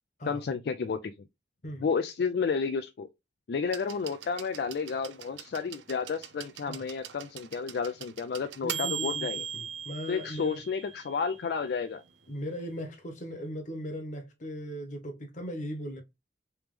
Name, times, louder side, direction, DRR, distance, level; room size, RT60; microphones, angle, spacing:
voice 1, 0.2-1.1 1.8-3.1 3.5-9.4 10.1-12.0, left 5 dB, 60° left, 0.3 m, -31 dB
sound 1, 3.7-11.5 12.6-12.7, right 8 dB, 80° right, 0.5 m, -40 dB
voice 2, 8.6-10.6 12.3-16.0, equal, 45° left, 1.0 m, -38 dB
3.5 x 3.0 x 3.2 m
head